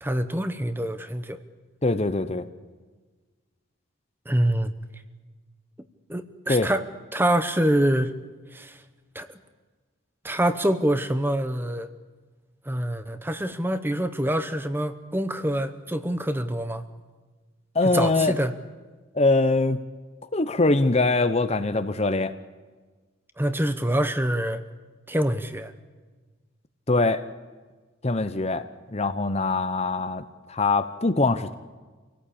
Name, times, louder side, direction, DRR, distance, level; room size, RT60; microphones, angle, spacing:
voice 1, 0.0-1.4 4.3-4.7 6.1-6.9 7.1-8.1 8.5-8.8 9.1-9.4 10.2-11.9 12.6-16.8 17.8-18.5 23.4-24.6 25.1-25.7, right 1 dB, 10° right, 10 dB, 1.0 m, -25 dB
voice 2, 1.8-2.5 6.5-6.7 17.7-18.3 19.1-19.8 20.3-22.3 26.9-27.2 28.0-28.6 28.9-31.5, left 3 dB, 30° left, 11 dB, 0.8 m, -23 dB
27.0 x 17.5 x 8.6 m, 1.4 s
head